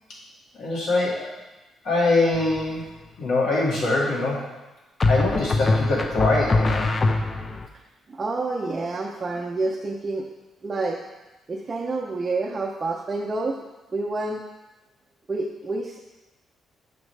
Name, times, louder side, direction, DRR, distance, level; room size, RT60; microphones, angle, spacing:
voice 1, 0.5-1.3 1.8-2.9 3.2-4.4 5.1-6.9, left 2 dB, 75° left, -4 dB, 2.0 m, -23 dB
sound 1, 2.3-2.8 5.0-7.7, left 3 dB, 35° left, 0.5 m, -23 dB
voice 2, 8.1-10.3 10.6-11.0 11.5-13.6 13.9-14.4 15.3-16.0, right 3 dB, 30° right, -2 dB, 0.6 m, -28 dB
7.1 x 5.1 x 3.3 m, 1.1 s
cardioid pair, 90°, 0 cm